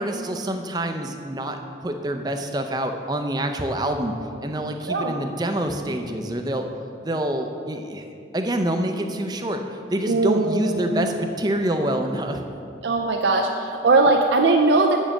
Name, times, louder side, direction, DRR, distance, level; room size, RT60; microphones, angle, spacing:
voice 1, 0.0-4.1 4.4-6.7 7.0-8.0 8.3-9.6 9.9-12.4, right 1 dB, 20° right, 5 dB, 0.5 m, -26 dB
voice 2, 10.1-11.1 12.8-15.0, right 3 dB, 75° right, 2 dB, 0.5 m, -20 dB
7.1 x 6.2 x 7.4 m, 2.5 s
head